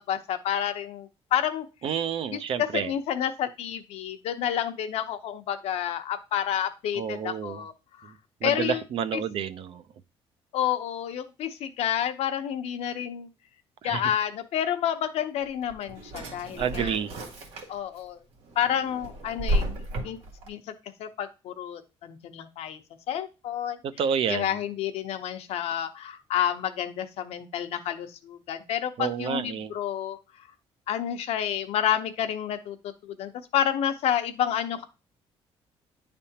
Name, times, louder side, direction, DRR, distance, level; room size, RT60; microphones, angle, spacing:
voice 1, 0.0-1.6 2.3-2.4 2.7-7.7 8.0-8.1 8.4-8.8 9.1-9.2 10.5-13.3 13.8-17.0 17.7-18.2 18.6-19.6 20.0-20.2 20.5-20.6 21.0-22.8 23.1-23.8 24.3-30.2 30.9-32.8 33.0-34.8, left 10 dB, 80° left, 0.8 m, -29 dB
voice 2, 1.8-2.9 7.0-7.6 8.4-9.8 13.8-14.1 16.6-17.2 23.8-24.6 29.0-29.7, right 8 dB, 60° right, 0.5 m, -29 dB
Drawer open or close, 15.4-18.0 18.4-20.5, right 1 dB, 80° right, 1.7 m, -32 dB
10.0 x 3.4 x 2.8 m
cardioid pair, 155°, 11 cm